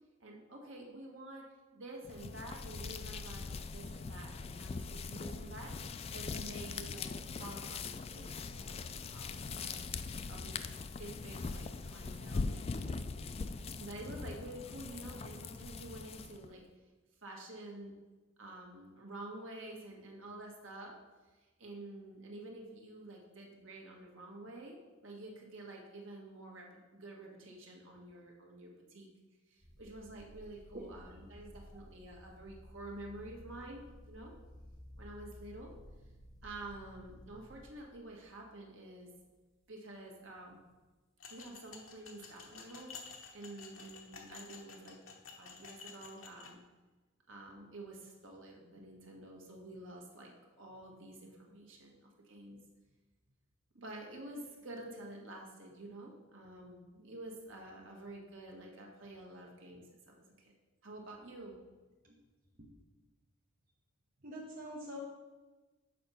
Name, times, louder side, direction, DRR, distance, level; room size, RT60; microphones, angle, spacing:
voice 1, 0.2-1.5 1.7-7.1 7.4-9.8 10.3-10.6 11.0-12.9 13.8-16.6 17.2-17.9 18.4-21.0 21.6-24.8 25.0-29.1 29.5-34.3 35.0-35.7 36.4-39.2 39.7-40.6 41.3-45.0 45.3-46.6 47.3-50.3 50.6-52.6 53.7-60.5 60.8-61.6, right 1 dB, 70° right, 0 dB, 1.5 m, -49 dB
sound 1, 2.0-16.5, left 4 dB, 30° left, 0.3 m, -41 dB
sound 2, 29.6-38.4 39.1-39.5 40.1-40.2 43.7-44.4, equal, ahead, 1.6 m, -55 dB
sound 3, 41.2-46.5, left 5 dB, 80° left, 1.0 m, -52 dB
voice 2, 64.2-65.0, equal, 45° right, -3 dB, 0.9 m, -45 dB
6.7 x 5.2 x 5.6 m, 1.2 s
head